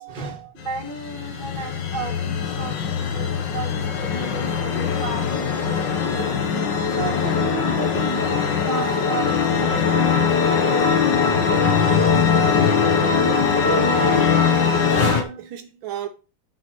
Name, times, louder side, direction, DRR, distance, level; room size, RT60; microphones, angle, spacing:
voice 1, 0.0-6.3 6.9-11.4, right 4 dB, 25° right, 1.7 m, -35 dB
sound 1, 0.6-15.2, left 6 dB, 65° left, 1.8 m, -21 dB
voice 2, 12.9-14.5 14.9-16.1, right 9 dB, 75° right, 1.5 m, -33 dB
6.9 x 4.9 x 5.9 m
omnidirectional pair, 2.2 m